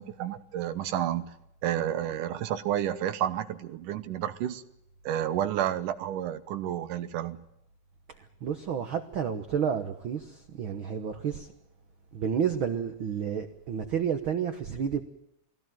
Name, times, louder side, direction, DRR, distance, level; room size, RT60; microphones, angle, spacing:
voice 1, 0.0-1.3 1.6-4.6 5.1-7.4, right 11 dB, 80° right, 12 dB, 2.6 m, -30 dB
voice 2, 8.1-11.5 12.1-15.0, right 7 dB, 55° right, 6 dB, 1.5 m, -31 dB
21.0 x 17.0 x 9.1 m, 0.78 s
omnidirectional pair, 3.7 m